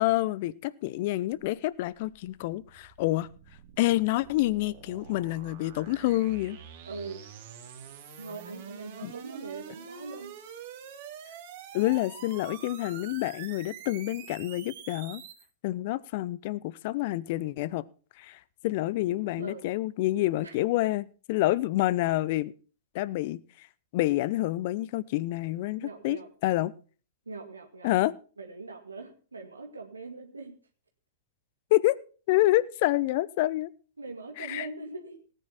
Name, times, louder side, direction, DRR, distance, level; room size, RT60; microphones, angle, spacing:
voice 1, 0.0-3.3 3.8-6.6 9.0-9.1 11.7-15.2 15.6-17.8 18.2-22.5 22.9-23.7 23.9-26.7 27.8-28.1 31.7-32.0 32.3-33.7 34.4-34.7, left 17 dB, 50° left, 20 dB, 0.7 m, -28 dB
sound 1, 1.3-15.5, right 8 dB, 50° right, 2.4 m, -46 dB
voice 2, 6.9-7.2 8.2-10.3 19.4-19.7 20.4-20.6 25.8-26.3 27.3-27.9 28.4-30.6 34.0-35.2, right 3 dB, 85° right, 3 dB, 2.0 m, -41 dB
18.0 x 9.3 x 4.1 m, 0.37 s
figure-of-eight pair, 105°, 0 cm